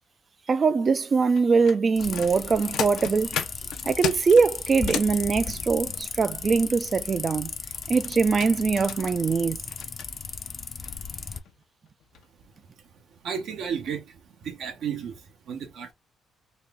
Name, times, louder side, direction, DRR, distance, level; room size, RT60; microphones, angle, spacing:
voice 1, 0.5-3.4 3.9-7.5 7.9-9.6, right 5 dB, 40° right, 0.4 m, -22 dB
sound 1, 1.3-5.2 7.7-10.1 10.8-10.9 11.4-11.6 12.0-12.2 12.6-12.7, left 8 dB, 80° left, 0.7 m, -35 dB
sound 2, 2.0-11.4, left 5 dB, 45° left, 0.6 m, -36 dB
voice 2, 13.2-15.9, right 7 dB, 75° right, 1.0 m, -33 dB
4.1 x 2.4 x 3.5 m
cardioid pair, 90°, 0 cm